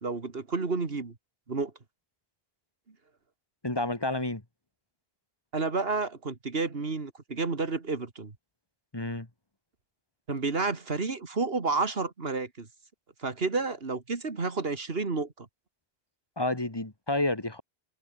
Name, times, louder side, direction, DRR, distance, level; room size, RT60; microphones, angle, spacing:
voice 1, 0.0-1.1 1.5-1.7 5.5-8.3 10.3-12.7 13.2-15.5, right 4 dB, 65° right, 2.3 m, -30 dB
voice 2, 3.6-4.4 8.9-9.3 16.4-17.6, left 2 dB, 25° left, 2.0 m, -30 dB
omnidirectional pair, 1.1 m